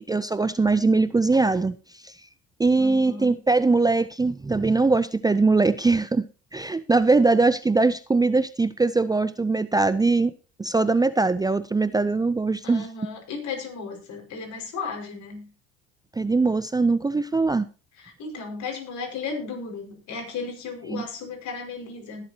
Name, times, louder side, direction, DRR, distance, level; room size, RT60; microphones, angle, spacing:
voice 1, 0.0-2.1 2.6-6.3 6.5-10.3 10.6-12.8 16.2-17.7 20.9-21.0, right 3 dB, 10° right, 14 dB, 0.5 m, -21 dB
voice 2, 2.7-3.4 12.6-15.5 18.0-22.2, left 4 dB, 60° left, 2 dB, 5.3 m, -35 dB
19.5 x 7.6 x 2.9 m, 0.34 s
supercardioid pair, 80°, 32 cm